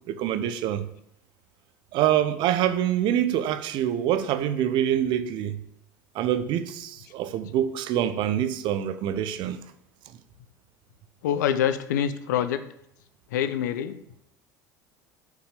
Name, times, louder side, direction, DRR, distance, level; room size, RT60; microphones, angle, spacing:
voice 1, 0.1-0.9 1.9-5.6 6.1-9.6, right 10 dB, 50° right, 0.8 m, -25 dB
voice 2, 11.2-12.6 13.3-14.0, left 9 dB, 65° left, 0.7 m, -25 dB
7.8 x 5.8 x 7.4 m
figure-of-eight pair, 70°, 10 cm